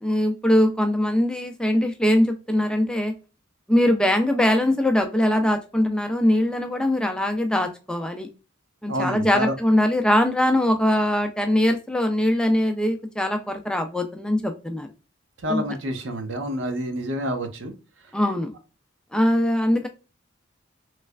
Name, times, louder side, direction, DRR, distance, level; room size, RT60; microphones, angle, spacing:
voice 1, 0.0-3.1 3.7-8.3 8.8-14.9 15.5-15.6 18.1-18.5 19.1-19.9, left 1 dB, 5° left, 5 dB, 0.3 m, -22 dB
voice 2, 8.9-9.5 15.4-17.7, equal, 70° right, 6 dB, 0.7 m, -28 dB
3.2 x 3.1 x 2.3 m, 0.32 s
head